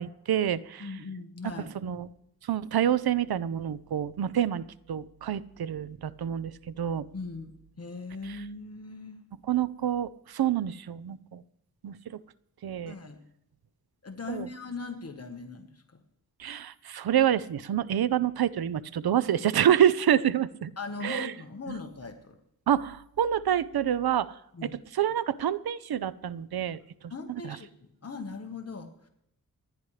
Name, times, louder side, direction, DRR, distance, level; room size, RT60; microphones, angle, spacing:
voice 1, 0.0-0.9 1.8-2.1 2.5-7.1 9.5-11.4 11.8-12.0 12.6-12.9 14.3-14.5 16.4-20.7 21.0-21.3 22.7-24.3 24.6-26.8, right 10 dB, 85° right, 17 dB, 0.6 m, -27 dB
voice 2, 0.8-1.7 7.1-9.2 12.9-13.2 14.0-16.0 20.8-22.4 24.5-24.8 27.1-27.7 28.0-29.1, left 3 dB, 40° left, 5 dB, 1.3 m, -39 dB
28.5 x 9.9 x 3.2 m, 0.79 s
wide cardioid pair, 150°, 36 cm